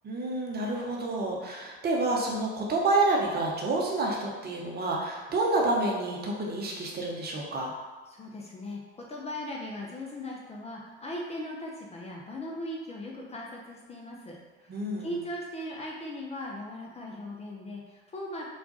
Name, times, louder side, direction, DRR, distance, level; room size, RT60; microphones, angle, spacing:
voice 1, 0.0-7.7 14.7-15.1, right 2 dB, 30° right, -1 dB, 0.9 m, -28 dB
voice 2, 8.1-8.8 9.1-14.4 15.0-18.4, left 1 dB, 20° left, -2 dB, 0.7 m, -38 dB
4.5 x 2.5 x 3.9 m, 1.3 s
figure-of-eight pair, 65°, 32 cm